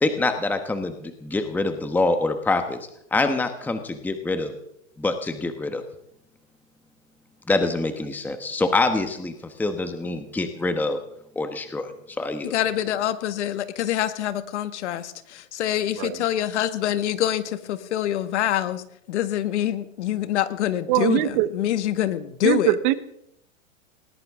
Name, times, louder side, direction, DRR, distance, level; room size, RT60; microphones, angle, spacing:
voice 1, 0.0-2.8 3.1-4.5 5.0-5.8 7.5-11.0 11.3-11.9 12.2-12.6, left 2 dB, 5° left, 8 dB, 1.2 m, -25 dB
voice 2, 12.4-18.8 19.1-22.8, left 12 dB, 60° left, 10 dB, 1.8 m, -25 dB
voice 3, 20.9-21.5 22.4-22.9, right 15 dB, 40° right, 14 dB, 1.2 m, -21 dB
20.0 x 19.5 x 3.7 m, 0.75 s
hypercardioid pair, 130°, 38 cm